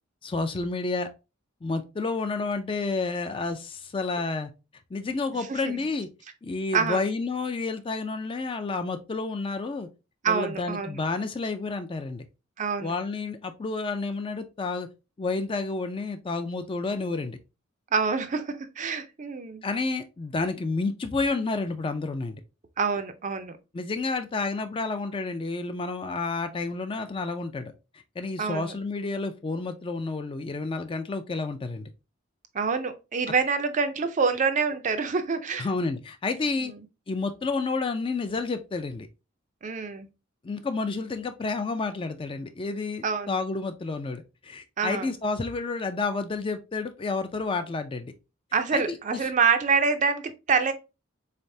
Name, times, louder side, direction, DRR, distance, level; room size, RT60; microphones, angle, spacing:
voice 1, 0.2-1.1 1.6-4.5 4.9-6.1 6.4-9.9 10.3-12.2 12.8-14.9 15.2-17.4 19.6-22.4 23.7-27.7 28.2-31.9 35.6-36.7 37.1-39.1 40.4-48.1 48.7-48.8, left 3 dB, 25° left, 0.4 m, -30 dB
voice 2, 10.2-11.0 12.6-12.9 17.9-19.6 22.8-23.6 28.4-28.7 32.5-35.7 36.6-36.8 39.6-40.1 43.0-43.4 44.8-45.1 48.5-50.7, right 5 dB, 35° right, 0.4 m, -26 dB
3.9 x 3.3 x 2.6 m
head